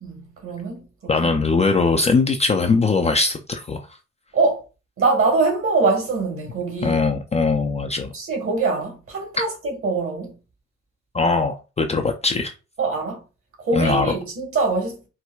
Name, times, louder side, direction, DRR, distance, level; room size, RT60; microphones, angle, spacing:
voice 1, 0.0-1.4 4.3-4.6 5.0-7.0 8.1-10.3 12.8-13.2 13.6-15.0, right 3 dB, 45° right, 1.5 m, -23 dB
voice 2, 1.1-3.8 6.8-8.1 11.1-12.5 13.7-14.1, left 4 dB, 20° left, 0.4 m, -20 dB
4.4 x 2.1 x 2.3 m
cardioid pair, 90°, 30 cm